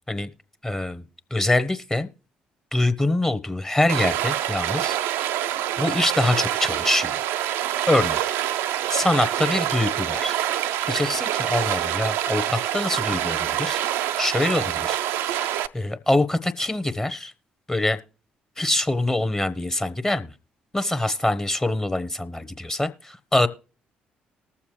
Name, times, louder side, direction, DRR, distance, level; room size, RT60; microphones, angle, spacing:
voice 1, 0.6-1.0 1.3-2.1 2.7-5.0 5.8-7.1 7.9-8.2 8.9-10.4 10.9-13.8 14.2-17.3 17.7-18.0 18.6-20.3 20.7-23.5, left 1 dB, 15° left, 0.9 m, -24 dB
Stream, 3.9-15.7, right 12 dB, 70° right, 0.4 m, -26 dB
19.5 x 7.2 x 3.2 m
hypercardioid pair, 45°, 4 cm